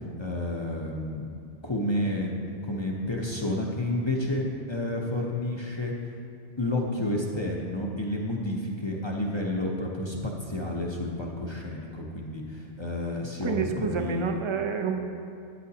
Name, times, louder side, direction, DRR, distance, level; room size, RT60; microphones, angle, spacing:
voice 1, 0.2-1.2 1.6-5.9 6.6-14.4, left 1 dB, 30° left, -2 dB, 0.7 m, -30 dB
voice 2, 13.4-15.0, right 6 dB, 35° right, 5 dB, 0.5 m, -28 dB
12.5 x 8.9 x 2.8 m, 2.3 s
omnidirectional pair, 1.2 m